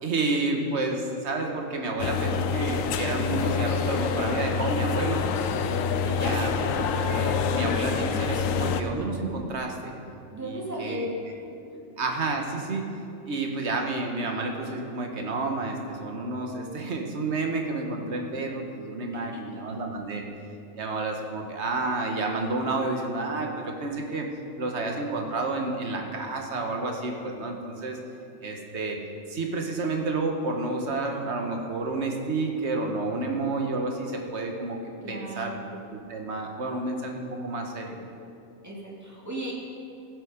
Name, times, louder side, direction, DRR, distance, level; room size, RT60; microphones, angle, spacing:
voice 1, 0.0-5.2 6.0-6.7 7.0-9.9 10.4-11.0 12.0-12.8 13.3-20.2 20.8-24.3 24.6-28.0 28.4-29.0 29.3-34.8 35.1-35.5 35.9-38.0, right 3 dB, 55° right, 2 dB, 1.5 m, -30 dB
sound 1, 2.0-8.8, left 6 dB, 80° left, 1.0 m, -26 dB
voice 2, 6.2-6.8 10.3-11.1 11.4-11.8 19.1-19.8 35.0-35.7 38.6-39.5, equal, 10° right, -4 dB, 2.3 m, -37 dB
15.5 x 8.0 x 5.1 m, 2.6 s
omnidirectional pair, 1.4 m